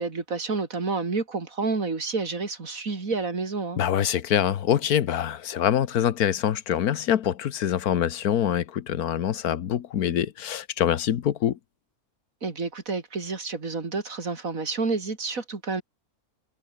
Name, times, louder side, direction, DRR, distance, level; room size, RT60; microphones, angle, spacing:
voice 1, 0.0-3.8 12.4-15.8, right 4 dB, 65° right, 3.3 m, -29 dB
voice 2, 3.8-11.6, left 10 dB, 85° left, 1.5 m, -25 dB
omnidirectional pair, 1.5 m